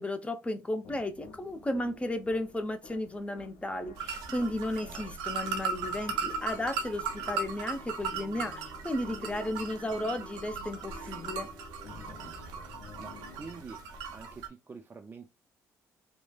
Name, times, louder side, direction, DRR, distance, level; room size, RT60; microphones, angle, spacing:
voice 1, 0.0-11.5, left 1 dB, 20° left, 0.6 m, -34 dB
sound 1, 0.8-14.5, left 3 dB, 70° left, 0.5 m, -51 dB
sound 2, 4.0-14.5, right 5 dB, 90° right, 0.4 m, -37 dB
voice 2, 4.8-5.2 12.0-13.8 14.1-15.3, right 4 dB, 30° right, 0.4 m, -48 dB
3.0 x 2.1 x 2.3 m
supercardioid pair, 70°, 7 cm